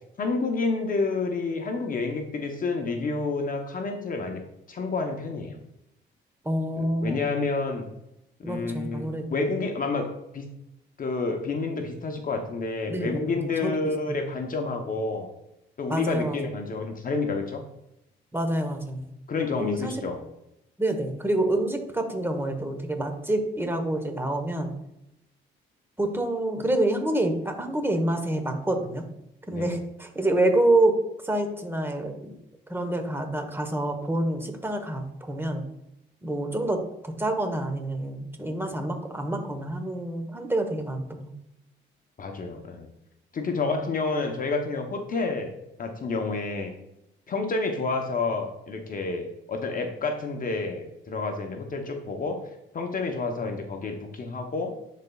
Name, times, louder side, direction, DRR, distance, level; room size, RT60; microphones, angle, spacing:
voice 1, 0.2-4.4 4.7-5.6 6.8-7.8 8.4-10.1 10.3-10.5 11.0-15.3 15.8-17.6 19.3-20.2 29.5-29.8 42.2-42.9 43.3-45.5 45.8-46.7 47.3-52.4 52.7-54.7, left 3 dB, 45° left, 4 dB, 0.8 m, -29 dB
voice 2, 6.4-7.3 8.4-9.5 12.9-13.7 14.1-14.2 15.9-16.5 18.3-19.1 19.6-20.0 20.8-24.7 26.0-29.0 29.5-32.4 32.7-35.6 36.2-41.3 43.5-43.8, right 1 dB, 10° right, 5 dB, 1.1 m, -27 dB
10.5 x 4.1 x 2.3 m, 0.84 s
cardioid pair, 90°, 20 cm